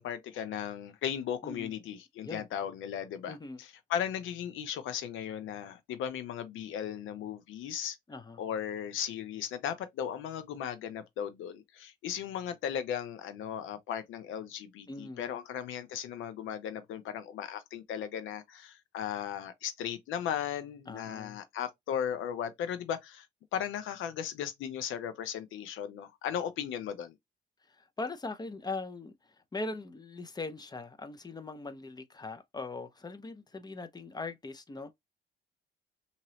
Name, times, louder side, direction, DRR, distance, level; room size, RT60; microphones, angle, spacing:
voice 1, 0.0-8.0 8.4-23.3 23.5-27.2, left 9 dB, 85° left, 0.7 m, -36 dB
voice 2, 1.4-1.7 2.2-2.5 3.3-3.6 8.1-8.4 14.9-15.3 20.9-21.4 27.7-29.1 29.5-34.9, left 3 dB, 20° left, 0.6 m, -40 dB
2.9 x 2.8 x 2.8 m
cardioid pair, 90°, 20 cm